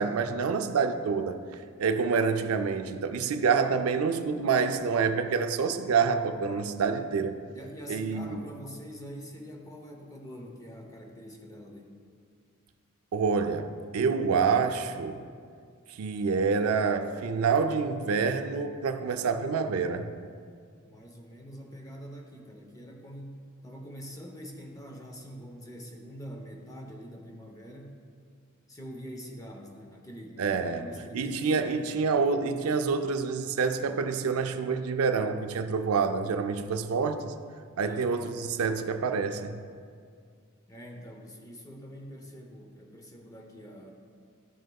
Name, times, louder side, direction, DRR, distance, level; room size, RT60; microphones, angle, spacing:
voice 1, 0.0-1.4 1.8-7.4 7.9-8.4 13.1-15.2 15.9-20.1 30.4-30.9 31.1-37.3 37.8-39.6, right 5 dB, 80° right, 0.4 m, -27 dB
voice 2, 7.5-12.0 20.1-20.2 20.9-28.0 28.7-32.1 37.8-38.1 40.7-43.9, equal, 15° left, 0.7 m, -45 dB
12.5 x 6.3 x 2.3 m
head